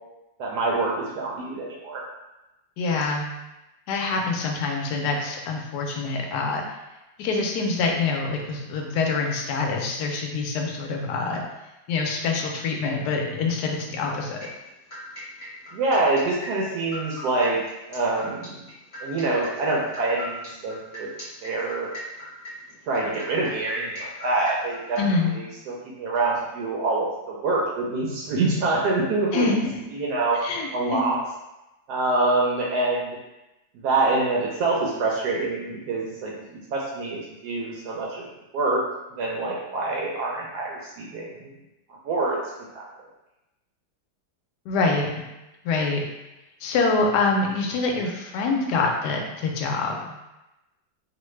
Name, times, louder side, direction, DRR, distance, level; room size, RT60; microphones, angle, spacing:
voice 1, 0.4-2.0 15.7-17.6 17.9-18.5 19.0-21.1 21.4-21.9 22.9-25.0 25.2-29.5 29.9-30.4 30.7-31.2 31.9-33.2 33.8-36.3 36.7-38.2 38.5-38.8 39.1-41.5 42.0-42.4, right 2 dB, 70° right, -3 dB, 1.0 m, -25 dB
voice 2, 2.8-3.3 3.9-6.6 7.2-11.4 11.9-14.4 25.0-25.3 29.3-29.6 30.4-31.1 44.7-45.3 45.6-46.0 46.6-50.1, left 3 dB, 75° left, 1 dB, 1.0 m, -25 dB
sound 1, 14.4-25.0, left 1 dB, 35° left, 1.0 m, -39 dB
3.2 x 2.1 x 3.1 m, 0.97 s
omnidirectional pair, 2.0 m